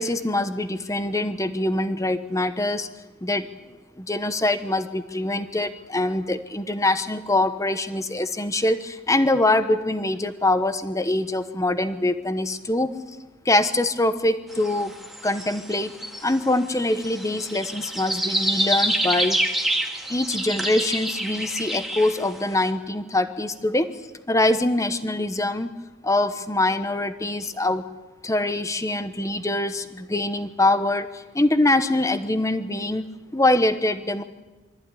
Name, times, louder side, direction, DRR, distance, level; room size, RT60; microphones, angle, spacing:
voice 1, 0.0-2.9 3.2-3.5 4.0-12.9 13.4-14.9 15.2-15.9 16.2-19.4 20.1-23.9 24.3-25.7 26.0-27.8 28.2-31.1 31.3-33.1 33.3-34.2, left 2 dB, 15° left, 11 dB, 1.0 m, -23 dB
sound 1, 14.5-22.5, right 1 dB, ahead, 1.9 m, -27 dB
23.5 x 14.0 x 9.9 m, 1.2 s
head